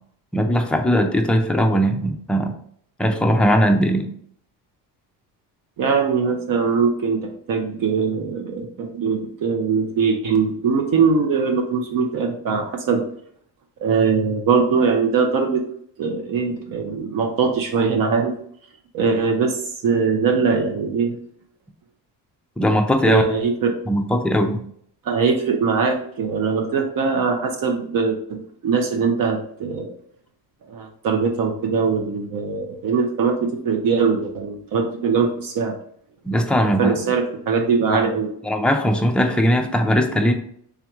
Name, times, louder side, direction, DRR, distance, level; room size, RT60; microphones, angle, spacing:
voice 1, 0.3-2.5 3.0-4.1 22.6-23.2 23.9-24.6 36.2-36.9 37.9-38.1 38.4-40.3, equal, 5° left, 3 dB, 0.3 m, -19 dB
voice 2, 5.8-13.1 13.8-15.6 16.0-18.3 18.9-21.2 23.0-23.8 25.0-29.9 30.7-35.8 36.6-38.3, right 5 dB, 55° right, 3 dB, 0.7 m, -21 dB
3.5 x 2.9 x 3.5 m, 0.64 s
cardioid pair, 120°, 41 cm